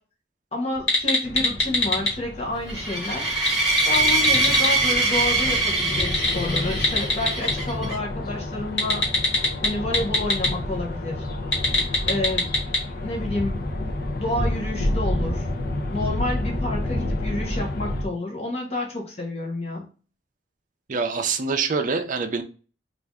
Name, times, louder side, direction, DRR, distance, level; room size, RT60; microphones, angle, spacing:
voice 1, 0.5-3.3 3.9-9.1 9.6-11.2 12.1-12.5 13.0-13.6 14.2-15.5 15.9-19.9, left 2 dB, 35° left, -1 dB, 0.9 m, -29 dB
sound 1, 0.8-2.1 3.3-4.7 5.9-7.5 8.8-10.5 11.4-12.8, left 2 dB, 70° left, 1.4 m, -22 dB
sound 2, 1.2-18.0, left 1 dB, 50° left, 0.6 m, -30 dB
sound 3, 2.7-7.9, right 2 dB, 5° right, 1.3 m, -23 dB
voice 2, 20.9-22.4, right 4 dB, 45° right, 6 dB, 0.5 m, -25 dB
3.3 x 2.5 x 3.5 m, 0.38 s
head